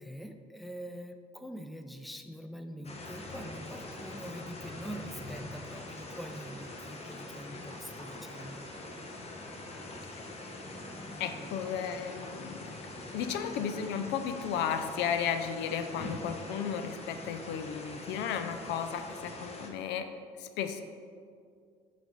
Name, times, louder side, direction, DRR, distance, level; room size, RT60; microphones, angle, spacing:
voice 1, 0.0-8.7, equal, ahead, 7 dB, 0.5 m, -44 dB
sound 1, 2.8-19.7, left 2 dB, 35° left, 1.0 m, -43 dB
voice 2, 11.2-12.8 13.1-20.1 20.4-20.8, left 8 dB, 70° left, 9 dB, 0.4 m, -34 dB
8.6 x 3.4 x 4.0 m, 2.2 s
hypercardioid pair, 55°, 19 cm